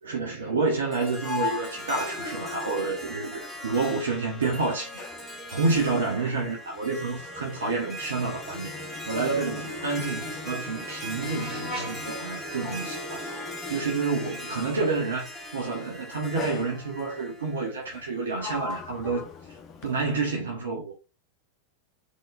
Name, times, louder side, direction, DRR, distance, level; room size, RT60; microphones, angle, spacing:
voice 1, 0.0-5.0 5.5-8.7 9.1-13.3 13.7-19.6 19.8-20.9, right 4 dB, 65° right, 1.2 m, -29 dB
Sliding door, 0.8-4.1 4.4-14.5 15.4-15.7 16.3-17.3 17.9-20.4, left 5 dB, 30° left, 0.9 m, -41 dB
Harp, 0.9-18.2, left 1 dB, 5° left, 1.5 m, -39 dB
sound 1, 9.6-14.5, equal, 30° right, 2.3 m, -43 dB
4.0 x 3.5 x 2.5 m
figure-of-eight pair, 90°, 0 cm